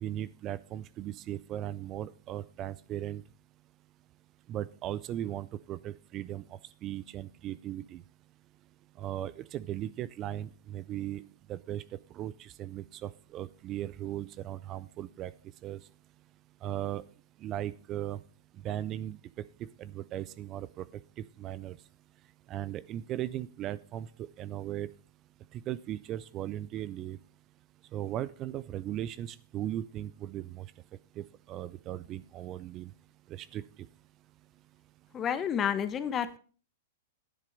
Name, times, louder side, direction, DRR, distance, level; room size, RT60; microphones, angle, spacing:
voice 1, 0.0-3.2 4.5-6.4 6.8-8.0 9.0-11.2 11.5-11.8 12.1-15.3 15.6-15.8 16.6-17.0 17.4-18.2 18.6-19.2 19.8-20.8 21.4-21.8 22.5-24.1 24.4-24.9 25.5-27.2 27.9-30.6 31.2-32.9 33.4-33.6, right 12 dB, 35° right, 20 dB, 0.4 m, -37 dB
voice 2, 35.1-36.4, left 8 dB, 25° left, 14 dB, 1.0 m, -30 dB
10.0 x 7.5 x 5.2 m, 0.40 s
hypercardioid pair, 120°, 0 cm